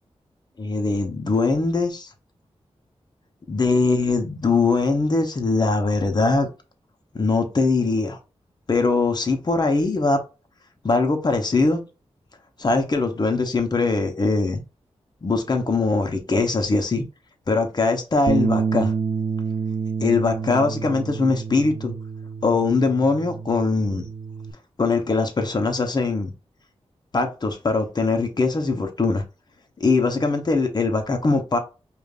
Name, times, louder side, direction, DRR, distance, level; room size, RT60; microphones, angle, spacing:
voice 1, 0.6-2.1 3.5-6.5 7.1-8.2 8.7-10.2 10.8-11.8 12.6-14.6 15.2-17.0 17.5-18.9 20.0-21.9 22.4-24.1 24.8-26.3 27.1-29.2 29.8-31.6, left 3 dB, 40° left, 0.8 m, -21 dB
Bass guitar, 18.3-24.5, right 5 dB, 60° right, 0.4 m, -28 dB
5.0 x 2.5 x 2.4 m
wide cardioid pair, 75°, 11 cm